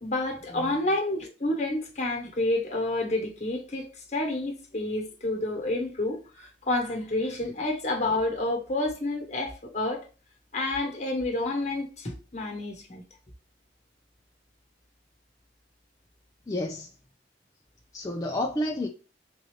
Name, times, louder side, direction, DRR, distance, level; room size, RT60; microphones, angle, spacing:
voice 1, 0.0-10.0 10.5-13.0, left 2 dB, 40° left, 1.2 m, -29 dB
voice 2, 16.5-16.9 17.9-18.9, left 1 dB, 20° left, 0.4 m, -30 dB
3.7 x 2.7 x 3.1 m
head